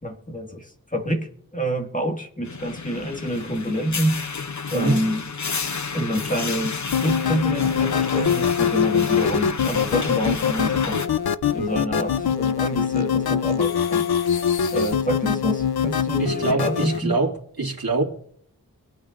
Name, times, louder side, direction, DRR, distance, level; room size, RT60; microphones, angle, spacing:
voice 1, 0.0-4.2 4.7-5.3 5.9-11.0 11.5-14.1 14.7-17.2, equal, 20° left, 3 dB, 1.9 m, -27 dB
sound 1, 2.4-11.1, left 5 dB, 50° left, 0.9 m, -31 dB
voice 2, 4.7-5.0 16.2-17.3 17.6-18.0, right 3 dB, 70° right, 0 dB, 2.3 m, -23 dB
sound 2, 6.9-17.0, left 7 dB, 80° left, 0.6 m, -23 dB
23.5 x 9.1 x 2.5 m, 0.66 s
wide cardioid pair, 50°, 37 cm